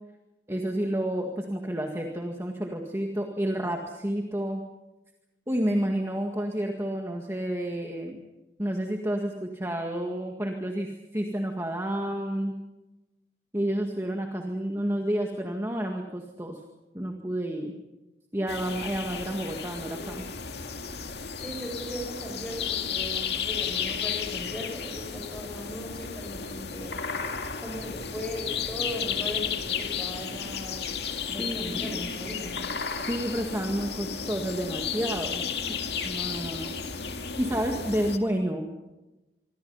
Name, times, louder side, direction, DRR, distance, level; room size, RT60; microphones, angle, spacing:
voice 1, 0.5-4.6 5.5-8.2 8.6-12.6 13.5-16.6 16.9-17.7 18.3-20.2 31.4-32.1 33.0-35.4 36.0-36.8 37.4-38.7, right 1 dB, 15° right, 2 dB, 1.9 m, -30 dB
sound 1, 18.5-38.2, left 6 dB, 70° left, 2.1 m, -33 dB
voice 2, 21.4-26.9 27.6-31.0 31.3-32.7, left 1 dB, 5° left, 1 dB, 7.4 m, -38 dB
26.0 x 25.0 x 5.7 m, 1.0 s
head